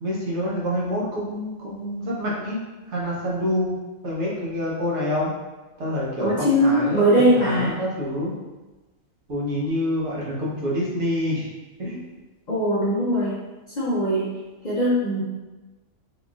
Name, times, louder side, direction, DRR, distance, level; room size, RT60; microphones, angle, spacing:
voice 1, 0.0-2.6 2.9-3.8 4.0-5.3 5.8-8.3 9.3-11.5 11.8-12.0, left 1 dB, 60° right, -5 dB, 1.2 m, -27 dB
voice 2, 6.2-7.7 12.5-13.4 13.8-14.3 14.6-15.2, equal, 45° left, -7 dB, 0.7 m, -20 dB
3.9 x 2.9 x 2.3 m, 1.1 s
omnidirectional pair, 1.4 m